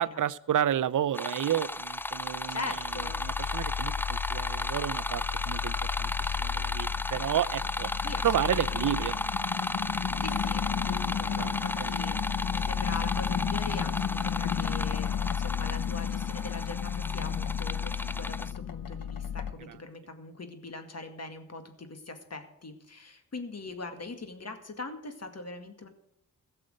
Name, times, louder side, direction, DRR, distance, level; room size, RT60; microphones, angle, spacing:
voice 1, 0.0-2.7 3.2-7.9 8.2-9.2 11.4-11.5, right 10 dB, 65° right, 17 dB, 0.6 m, -31 dB
sound 1, 1.1-18.5, left 1 dB, 5° left, 0.3 m, -34 dB
sound 2, 2.1-19.5, left 8 dB, 75° left, 1.0 m, -33 dB
voice 2, 2.5-3.2 8.0-8.3 8.5-9.1 10.2-25.9, left 3 dB, 50° left, 7 dB, 2.1 m, -42 dB
16.5 x 6.7 x 6.4 m, 0.80 s
cardioid pair, 70°, 34 cm